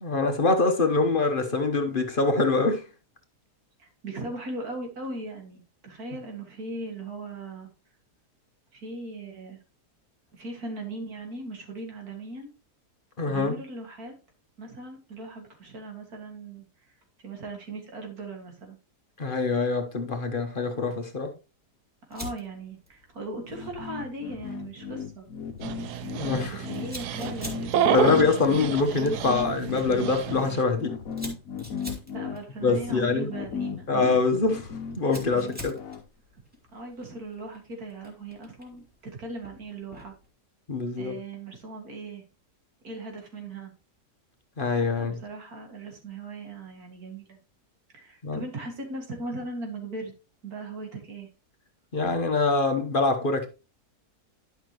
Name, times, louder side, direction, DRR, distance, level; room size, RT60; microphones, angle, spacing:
voice 1, 0.0-2.8 13.2-13.5 19.2-21.3 26.1-26.6 27.9-31.0 32.6-33.3 33.9-34.7 35.0-35.8 40.7-41.2 44.6-45.2 48.2-48.4 51.9-53.5, left 3 dB, 35° left, 1.1 m, -24 dB
voice 2, 3.8-7.7 8.7-9.6 10.3-12.5 13.3-14.1 14.6-18.8 22.1-25.3 26.5-28.2 28.5-28.7 32.1-33.9 36.7-40.1 41.0-42.2 42.8-43.7 45.0-47.4 47.9-50.1 50.4-51.3, right 2 dB, 65° right, 2.6 m, -39 dB
Fire, 22.1-40.3, left 1 dB, 5° right, 2.6 m, -48 dB
sound 1, 23.5-36.0, left 7 dB, 65° left, 1.3 m, -35 dB
Dog, 25.6-30.6, right 9 dB, 80° right, 1.2 m, -30 dB
11.5 x 5.9 x 3.0 m
omnidirectional pair, 1.7 m